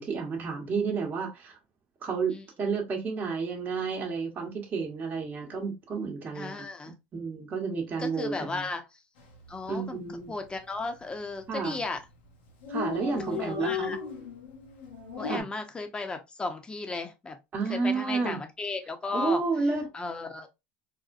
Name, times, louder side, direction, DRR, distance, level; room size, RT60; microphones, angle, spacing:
voice 1, 0.0-1.6 2.0-8.6 9.7-10.3 11.5-11.8 12.7-13.9 15.3-15.5 17.5-18.4 19.1-19.9, right 4 dB, 30° right, 1.1 m, -31 dB
voice 2, 6.3-7.0 8.0-9.0 9.5-10.0 10.3-12.0 12.9-14.0 15.2-17.4 17.7-19.4 19.9-20.5, left 3 dB, 15° left, 0.8 m, -35 dB
Dog, 9.2-9.4 9.7-9.8 10.1-10.8 11.4-11.6 11.9-12.0 12.2-12.3 12.5-15.4, left 5 dB, 90° left, 1.2 m, -35 dB
4.1 x 2.1 x 2.5 m
supercardioid pair, 110°, 5 cm